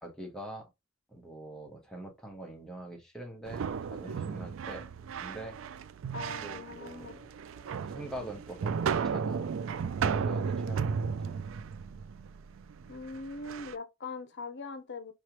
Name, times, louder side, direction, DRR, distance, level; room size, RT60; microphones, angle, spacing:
voice 1, 0.0-0.7 1.1-4.9 5.2-5.6 6.4-7.1 7.8-9.5 10.0-11.4, right 1 dB, 5° left, 1.0 m, -44 dB
sound 1, 3.5-13.7, right 6 dB, 65° right, 0.3 m, -34 dB
Keyboard (musical), 4.0-6.3, right 3 dB, 80° right, 0.9 m, -54 dB
sound 2, 5.9-12.4, equal, 30° left, 1.1 m, -66 dB
voice 2, 6.1-7.2 12.9-15.1, left 3 dB, 55° left, 0.7 m, -41 dB
4.9 x 3.2 x 2.9 m
head